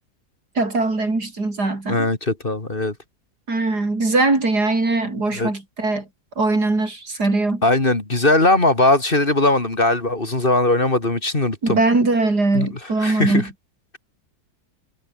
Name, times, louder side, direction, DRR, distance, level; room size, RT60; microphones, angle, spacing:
voice 1, 0.6-2.1 3.5-6.1 6.4-7.6 11.6-13.5, right 3 dB, 85° right, 5.8 m, -21 dB
voice 2, 1.9-2.9 5.3-5.5 7.6-11.8 12.5-13.5, left 2 dB, 35° left, 3.0 m, -19 dB
omnidirectional pair, 1.7 m